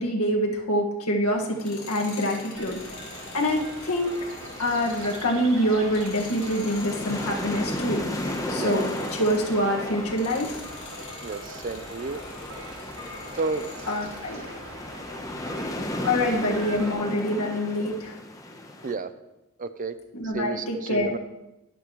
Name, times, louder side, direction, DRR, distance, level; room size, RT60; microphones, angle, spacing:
voice 1, 0.0-2.8 3.3-4.1 4.6-8.0 8.5-8.8 9.1-10.6 13.9-14.5 16.1-18.1 20.1-21.2, equal, 85° left, 0 dB, 1.8 m, -25 dB
sound 1, 1.4-18.9, left 1 dB, 15° left, 0.9 m, -36 dB
Tools, 1.5-9.7 10.1-14.3, left 4 dB, 70° left, 3.9 m, -46 dB
sound 2, 2.5-16.9, right 1 dB, 65° right, 1.8 m, -42 dB
voice 2, 8.5-8.8 11.2-12.2 13.4-13.7 18.8-19.1 19.6-20.0 20.3-21.2, right 3 dB, 40° right, 12 dB, 0.5 m, -31 dB
13.5 x 11.0 x 3.1 m, 0.96 s
head